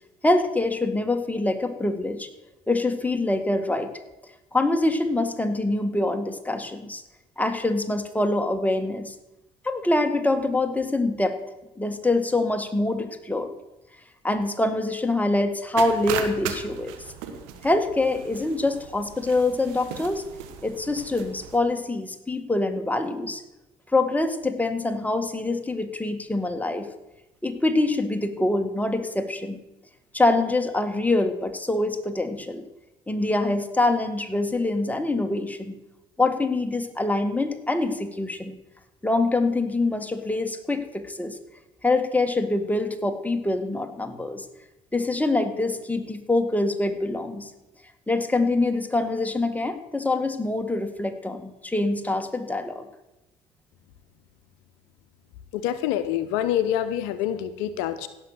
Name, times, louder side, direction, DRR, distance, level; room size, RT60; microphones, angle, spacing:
voice 1, 0.2-2.3 2.7-3.9 4.5-7.0 7.4-9.1 9.6-11.4 11.8-13.5 14.2-17.0 17.6-20.3 20.6-23.4 23.9-26.9 27.4-29.6 30.1-32.6 33.1-35.8 36.2-38.5 39.0-41.4 41.8-44.5 44.9-47.5 48.1-52.9, left 2 dB, 5° left, 6 dB, 1.7 m, -25 dB
sound 1, 15.8-21.6, right 8 dB, 75° right, 1.4 m, -37 dB
voice 2, 55.5-58.1, left 11 dB, 75° left, 12 dB, 0.7 m, -26 dB
16.5 x 6.3 x 6.6 m, 0.97 s
hypercardioid pair, 55°, 20 cm